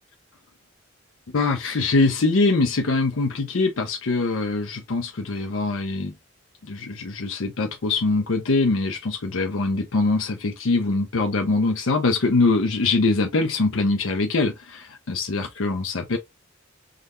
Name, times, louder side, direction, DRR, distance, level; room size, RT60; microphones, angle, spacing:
voice 1, 1.3-6.1 6.6-16.2, left 3 dB, 70° left, 0.6 m, -23 dB
3.8 x 3.2 x 2.4 m
head